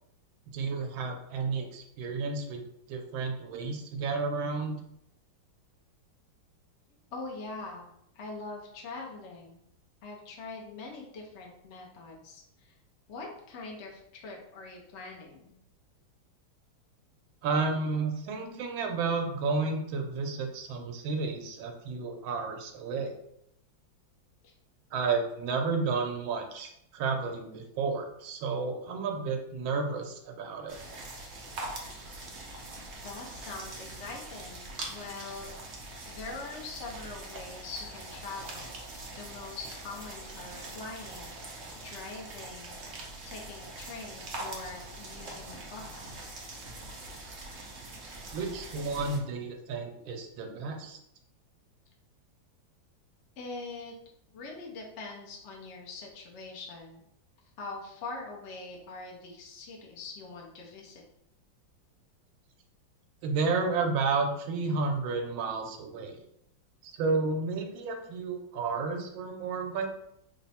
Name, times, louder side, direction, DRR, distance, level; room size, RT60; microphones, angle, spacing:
voice 1, 0.5-2.6 2.9-4.8 17.4-23.1 24.9-30.8 48.3-51.0 63.2-66.2 66.8-69.9, right 4 dB, 85° right, 3 dB, 1.4 m, -31 dB
voice 2, 7.1-7.9 8.1-9.6 10.0-12.7 13.1-15.5 24.4-24.5 33.0-35.5 36.1-38.8 39.1-41.4 41.8-42.8 43.2-46.2 53.4-53.9 54.3-57.0 57.6-61.0, left 3 dB, 70° left, -1 dB, 0.6 m, -43 dB
sound 1, 30.7-49.2, right 2 dB, 65° right, 0.6 m, -43 dB
3.5 x 2.1 x 4.1 m, 0.74 s
omnidirectional pair, 2.1 m